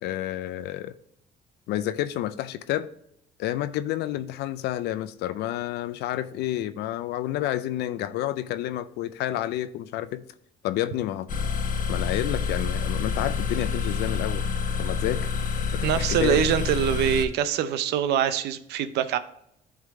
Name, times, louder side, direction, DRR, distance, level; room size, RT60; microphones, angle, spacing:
voice 1, 0.0-0.9 1.7-2.9 3.4-10.2 10.6-11.3 11.9-14.5 14.8-15.3 15.7-16.4, left 13 dB, 80° left, 0.4 m, -29 dB
sound 1, 11.3-17.3, left 6 dB, 55° left, 0.9 m, -28 dB
voice 2, 15.8-19.2, right 9 dB, 80° right, 0.6 m, -24 dB
11.0 x 3.7 x 3.6 m
cardioid pair, 110°, 17 cm